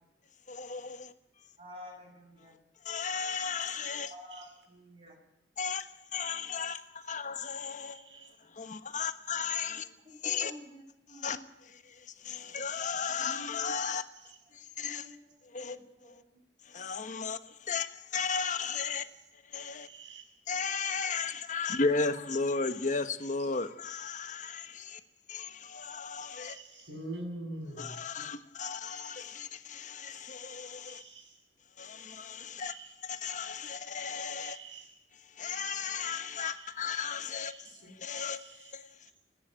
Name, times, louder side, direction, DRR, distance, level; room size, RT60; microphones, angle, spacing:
voice 1, 0.5-1.1 2.8-4.1 5.6-8.0 8.6-9.9 10.2-10.5 11.2-11.4 12.2-14.0 14.8-15.1 15.5-15.8 16.1-16.2 16.7-17.4 17.7-19.0 19.5-19.9 20.5-25.0 25.3-26.6 27.8-31.0 31.8-32.7 33.0-34.6 35.4-37.5 38.0-38.4 38.7-38.8, left 5 dB, 45° left, 1.3 m, -35 dB
voice 2, 1.6-2.6 4.0-5.2 9.7-9.9 10.2-11.5 13.0-13.4 14.9-16.2, left 1 dB, 30° right, 7.3 m, -51 dB
voice 3, 7.9-8.3 19.9-20.2 21.7-21.8 26.4-27.9 30.9-31.3 32.6-32.9 34.4-34.9 36.4-36.7 37.4-37.7 38.2-38.7, right 2 dB, 90° right, 6.9 m, -44 dB
30.0 x 10.0 x 8.9 m
head